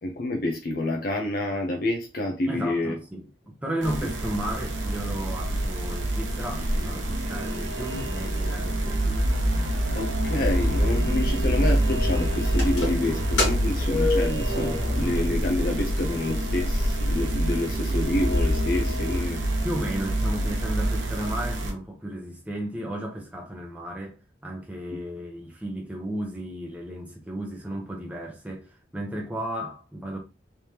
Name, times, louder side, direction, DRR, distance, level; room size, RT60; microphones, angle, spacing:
voice 1, 0.0-3.0 9.9-19.4, left 1 dB, 50° left, 0.6 m, -28 dB
voice 2, 2.5-9.3 19.6-24.2 24.4-30.2, right 1 dB, 5° right, 0.7 m, -34 dB
sound 1, 3.8-21.7, right 1 dB, 75° right, 0.8 m, -28 dB
sound 2, 7.2-19.2, equal, 30° left, 1.2 m, -29 dB
sound 3, 12.5-15.6 15.9-16.0 16.8-16.9 17.3-17.4 17.6-18.3, left 2 dB, 70° left, 1.7 m, -29 dB
3.4 x 3.2 x 2.8 m
head